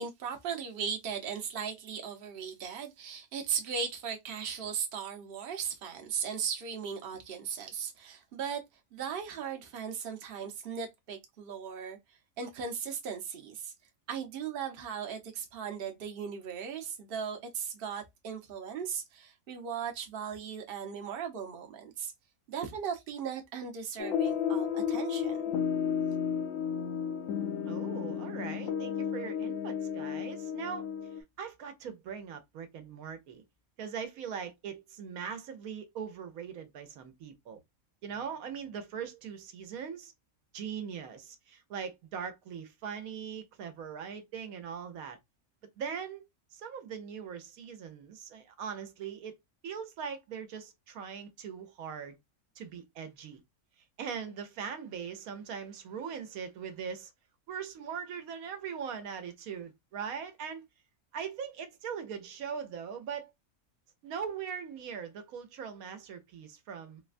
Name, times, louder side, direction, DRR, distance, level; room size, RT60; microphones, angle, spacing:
voice 1, 0.0-8.6 8.9-12.0 12.4-13.7 14.1-22.1 22.5-25.4, right 7 dB, 50° right, 0.8 m, -37 dB
sound 1, 24.0-31.2, left 8 dB, 70° left, 1.0 m, -32 dB
voice 2, 27.6-30.9 31.4-33.4 33.8-37.6 38.0-40.1 40.5-45.2 45.8-46.2 46.5-49.4 49.6-52.2 52.6-53.4 54.0-57.1 57.5-60.6 61.1-63.3 64.0-67.0, right 7 dB, 80° right, 1.1 m, -40 dB
4.0 x 2.2 x 2.4 m
omnidirectional pair, 1.5 m